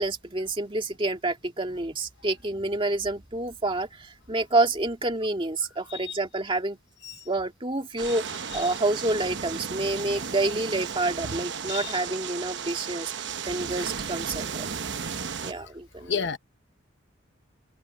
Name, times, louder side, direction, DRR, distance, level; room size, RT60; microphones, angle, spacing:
voice 1, 0.0-6.8 7.3-13.1 13.5-14.7 15.4-16.3, right 2 dB, 25° right, 2.1 m, -28 dB
voice 2, 5.9-6.1 7.1-7.2 11.7-11.9 16.1-16.4, left 6 dB, 60° left, 0.9 m, -30 dB
sound 1, 8.0-15.5, right 6 dB, 60° right, 1.0 m, -34 dB
open air
head